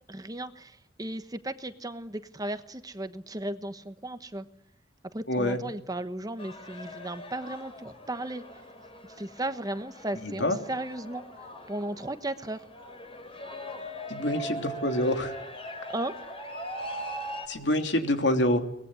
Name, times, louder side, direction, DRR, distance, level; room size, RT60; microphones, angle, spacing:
voice 1, 0.1-4.4 5.1-8.4 9.2-11.2 11.7-12.6 15.9-16.2, right 1 dB, 20° right, 10 dB, 1.2 m, -35 dB
voice 2, 5.3-5.6 10.2-10.6 14.1-15.3 17.5-18.6, left 1 dB, 70° left, 6 dB, 3.1 m, -26 dB
sound 1, 6.4-17.5, equal, 30° left, 5.1 m, -41 dB
23.5 x 20.0 x 9.7 m, 0.78 s
head